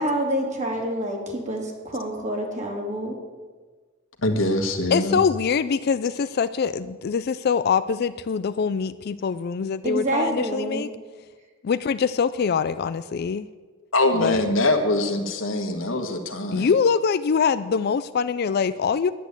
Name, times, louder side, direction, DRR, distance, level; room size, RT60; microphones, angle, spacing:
voice 1, 0.0-3.2 9.8-10.9, right 1 dB, 35° right, 0 dB, 2.9 m, -27 dB
voice 2, 4.2-5.2 13.9-16.7, left 2 dB, 80° left, 5 dB, 1.6 m, -23 dB
voice 3, 4.9-10.9 11.6-13.5 14.2-14.4 16.5-19.1, left 6 dB, 50° left, 14 dB, 0.4 m, -23 dB
10.5 x 10.0 x 8.1 m, 1.4 s
head